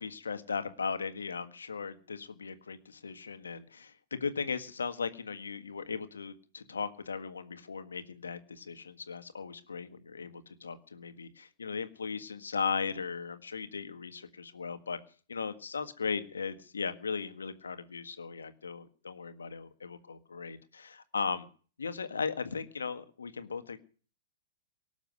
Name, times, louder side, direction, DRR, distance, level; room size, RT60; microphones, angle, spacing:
voice 1, 0.0-15.0 15.3-21.5 21.8-23.8, left 5 dB, 90° left, 10 dB, 1.7 m, -37 dB
18.5 x 7.3 x 9.4 m, 0.41 s
hypercardioid pair, 115°, 0 cm